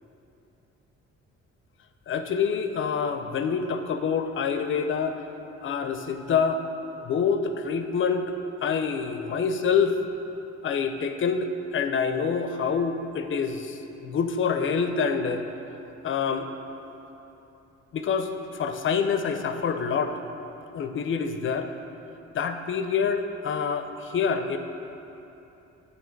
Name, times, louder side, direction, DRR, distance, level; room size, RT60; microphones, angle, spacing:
voice 1, 2.1-5.2 5.6-6.6 7.0-8.3 8.6-9.9 10.6-15.4 16.0-16.5 17.9-18.3 18.6-20.1 20.7-21.7 22.3-24.6, left 6 dB, 40° left, 7 dB, 0.5 m, -26 dB
8.9 x 3.2 x 4.5 m, 3.0 s
cardioid pair, 90°, 30 cm